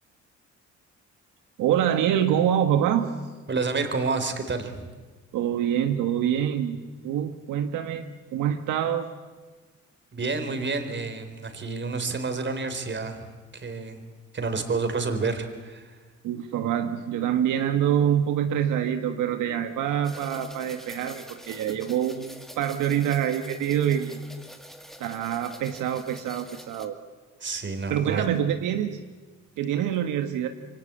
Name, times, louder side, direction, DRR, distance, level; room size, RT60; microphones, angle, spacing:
voice 1, 1.6-3.1 5.3-6.8 7.0-9.1 16.2-24.2 25.0-26.9 27.9-29.0 29.6-30.5, right 9 dB, 90° right, 6 dB, 1.6 m, -25 dB
voice 2, 3.5-4.9 10.1-13.3 13.5-14.0 14.3-16.0 27.4-28.3, right 4 dB, 40° right, 7 dB, 4.1 m, -29 dB
sound 1, 20.0-26.9, equal, ahead, 2.5 m, -46 dB
27.0 x 23.5 x 9.0 m, 1.3 s
cardioid pair, 90°, 30 cm